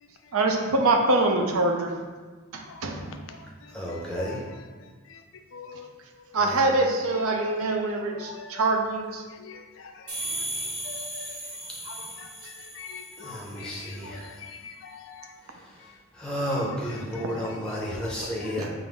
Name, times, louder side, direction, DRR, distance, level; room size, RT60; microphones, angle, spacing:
voice 1, 0.3-2.0 2.5-3.2 5.7-5.8 6.3-9.2 18.6-18.7, right 2 dB, 80° right, 3 dB, 0.5 m, -24 dB
voice 2, 3.7-4.4 13.2-14.2 16.2-18.7, equal, 5° left, -5 dB, 0.6 m, -31 dB
voice 3, 5.5-5.8 9.5-9.6 10.9-11.3 12.8-13.8 14.6-15.2 17.9-18.1 18.4-18.5, left 6 dB, 60° left, 5 dB, 0.4 m, -43 dB
sound 1, 10.1-13.7, right 1 dB, 65° right, 1.5 m, -36 dB
5.4 x 2.0 x 3.4 m, 1.4 s
head